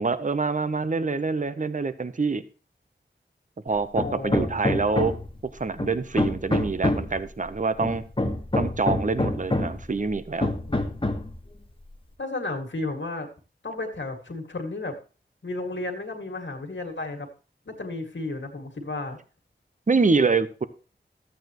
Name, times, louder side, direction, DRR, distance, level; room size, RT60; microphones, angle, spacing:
voice 1, 0.0-2.4 3.6-5.2 5.4-8.1 8.6-10.5 19.9-20.6, right 4 dB, 40° right, 12 dB, 0.8 m, -25 dB
voice 2, 4.0-4.8 10.7-10.9 12.2-13.3 13.6-15.0 15.4-17.3 17.7-19.2, left 2 dB, 75° left, 3 dB, 2.1 m, -33 dB
Hammer, 4.0-5.4 5.8-7.2 7.8-9.8 10.4-11.3, left 1 dB, 25° left, 1.5 m, -26 dB
12.5 x 8.6 x 3.0 m, 0.36 s
wide cardioid pair, 50°, 19 cm